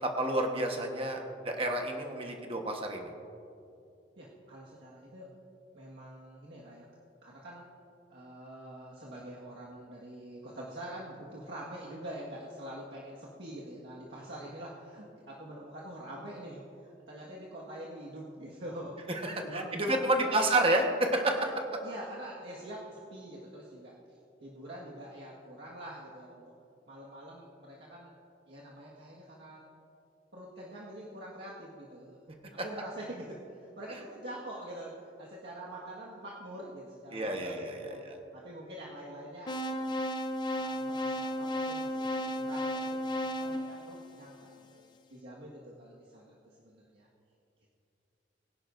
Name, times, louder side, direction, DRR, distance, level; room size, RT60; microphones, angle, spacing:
voice 1, 0.0-3.1 19.2-21.8 37.1-38.1, right 1 dB, 30° right, 3 dB, 1.2 m, -30 dB
voice 2, 4.2-5.3 5.7-6.9 7.2-7.6 8.1-19.0 19.4-20.5 21.8-23.9 24.4-26.4 26.9-28.1 28.5-29.6 30.3-32.2 32.5-34.9 35.2-38.0 38.3-40.0 40.5-44.8 45.1-46.4 46.6-47.1, right 1 dB, 70° right, -6 dB, 1.7 m, -45 dB
sound 1, 39.5-44.6, equal, 25° left, 0.6 m, -34 dB
22.5 x 10.5 x 2.6 m, 2.7 s
head